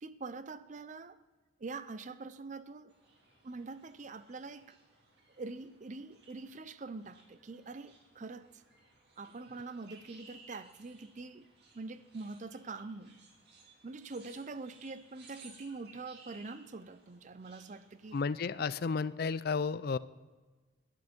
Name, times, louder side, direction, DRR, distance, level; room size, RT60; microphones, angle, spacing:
voice 1, 0.0-1.2 1.6-2.9 3.4-4.8 5.4-8.6 9.2-11.5 11.7-13.2 13.8-18.2, right 3 dB, 35° right, 0.5 m, -44 dB
sound 1, 2.9-18.2, right 3 dB, 50° right, 2.3 m, -60 dB
voice 2, 18.1-20.0, left 5 dB, 50° left, 0.4 m, -32 dB
12.0 x 10.5 x 5.2 m
head